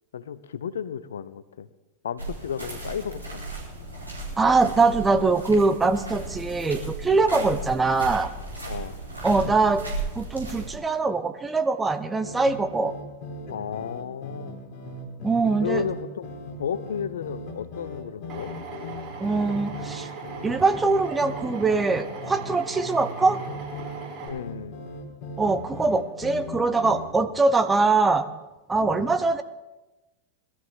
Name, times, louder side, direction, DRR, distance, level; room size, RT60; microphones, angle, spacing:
voice 1, 0.1-1.7 2.0-3.5 7.3-7.5 8.6-9.0 13.5-14.5 15.6-16.3 16.6-18.5 24.3-24.8 28.8-29.2, left 7 dB, 65° left, 15 dB, 0.7 m, -33 dB
sound 1, 2.2-10.8, right 2 dB, 85° right, 4.3 m, -35 dB
voice 2, 4.4-8.3 9.2-9.8 10.2-12.9 15.2-15.8 19.2-20.1 20.4-23.4 25.4-28.3 28.7-29.4, right 3 dB, 10° right, 9 dB, 0.8 m, -22 dB
sound 2, 12.1-27.2, left 1 dB, 40° left, 2.8 m, -39 dB
Drill, 18.3-24.3, right 4 dB, 40° right, 6.1 m, -39 dB
21.5 x 13.0 x 3.7 m, 1.0 s
figure-of-eight pair, 90°, 0 cm